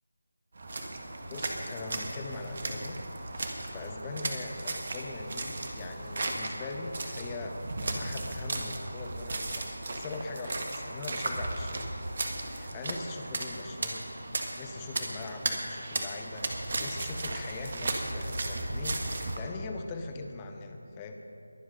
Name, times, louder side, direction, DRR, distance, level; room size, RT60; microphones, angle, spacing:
sound 1, 0.6-19.4, right 2 dB, 45° right, 1.6 m, -35 dB
voice 1, 1.3-3.0 3.4-11.9 12.4-21.1, left 3 dB, 15° left, 4 dB, 0.9 m, -41 dB
22.0 x 8.4 x 5.4 m, 2.6 s
figure-of-eight pair, 160°, 0 cm